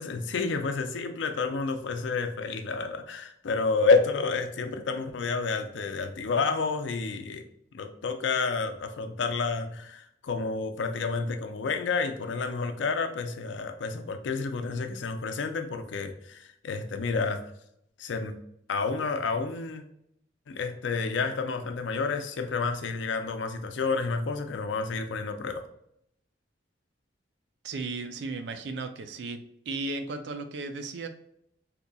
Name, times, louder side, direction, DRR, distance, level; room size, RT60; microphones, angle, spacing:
voice 1, 0.0-7.4 7.7-17.4 18.0-18.4 18.7-19.8 20.5-25.7, left 4 dB, 90° left, 7 dB, 0.4 m, -29 dB
voice 2, 27.6-31.1, right 3 dB, 70° right, 8 dB, 0.4 m, -35 dB
3.9 x 2.8 x 2.2 m, 0.74 s
head